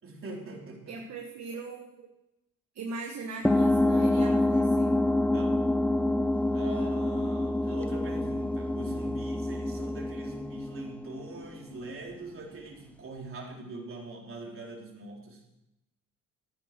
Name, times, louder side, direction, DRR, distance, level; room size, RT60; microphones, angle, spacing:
voice 1, 0.0-1.0 5.3-5.8 6.5-15.4, right 2 dB, 45° right, -1 dB, 4.0 m, -43 dB
voice 2, 0.9-2.1 2.7-4.9, right 4 dB, 60° right, 1 dB, 1.7 m, -40 dB
sound 1, 3.4-11.6, left 1 dB, 5° left, 0.7 m, -27 dB
14.0 x 10.0 x 6.0 m, 0.89 s
cardioid pair, 90°, 30 cm